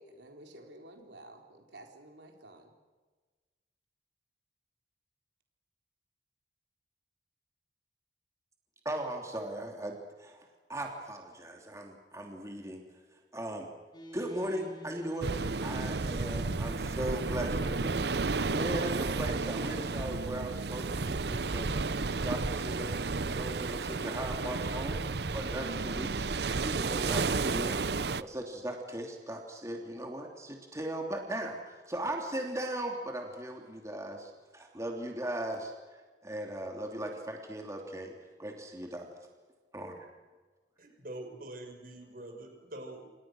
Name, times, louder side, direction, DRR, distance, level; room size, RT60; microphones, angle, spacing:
voice 1, 0.0-2.7, right 1 dB, 85° right, 3 dB, 4.1 m, -52 dB
voice 2, 8.8-12.8 13.3-13.7 14.1-18.0 18.5-25.0 25.3-26.3 26.5-38.1 38.4-39.1 39.7-40.1, right 1 dB, 15° right, 2 dB, 3.1 m, -38 dB
sound 1, 13.9-24.2, equal, 25° left, 6.7 m, -49 dB
sound 2, 15.2-28.2, right 4 dB, 70° right, 0.8 m, -32 dB
voice 3, 40.8-43.0, right 1 dB, 50° right, 5 dB, 6.1 m, -45 dB
28.0 x 27.0 x 6.4 m, 1.3 s
head